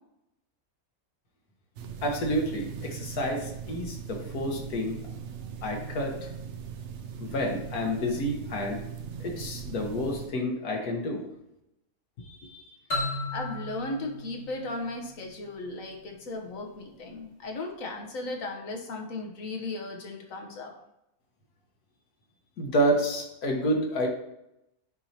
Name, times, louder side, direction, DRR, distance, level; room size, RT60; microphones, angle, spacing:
sound 1, 1.8-10.3, right 7 dB, 65° right, 0.7 m, -39 dB
voice 1, 2.0-5.0 5.6-6.2 7.2-8.8 9.2-11.2 22.6-24.1, equal, 80° left, 1 dB, 1.7 m, -29 dB
voice 2, 12.2-12.8 13.1-20.7, left 2 dB, 60° left, 2 dB, 1.4 m, -36 dB
sound 2, 12.9-15.6, left 2 dB, 40° left, 2.4 m, -35 dB
9.0 x 4.5 x 2.8 m, 0.85 s
omnidirectional pair, 1.6 m